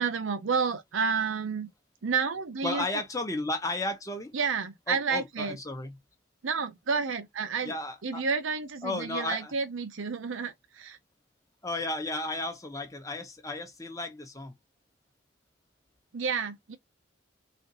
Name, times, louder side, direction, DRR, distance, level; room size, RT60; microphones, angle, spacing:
voice 1, 0.0-1.7 2.0-2.8 4.3-5.6 6.4-7.7 8.0-11.0 16.1-16.8, right 5 dB, 80° right, 0.6 m, -30 dB
voice 2, 2.6-4.3 4.9-5.9 7.6-8.2 8.8-9.5 11.6-14.6, left 2 dB, 15° left, 0.9 m, -34 dB
4.3 x 2.5 x 3.9 m
head